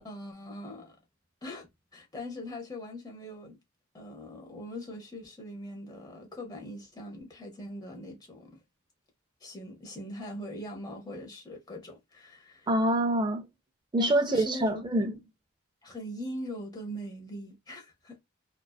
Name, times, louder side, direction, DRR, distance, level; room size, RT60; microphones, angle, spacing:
voice 1, 0.0-1.0 1.4-3.6 3.9-8.5 9.4-12.7 14.0-15.2 15.8-18.2, left 1 dB, 20° left, 0.6 m, -41 dB
voice 2, 12.7-13.5 13.9-15.1, right 1 dB, 20° right, 0.3 m, -25 dB
2.5 x 2.2 x 2.2 m
head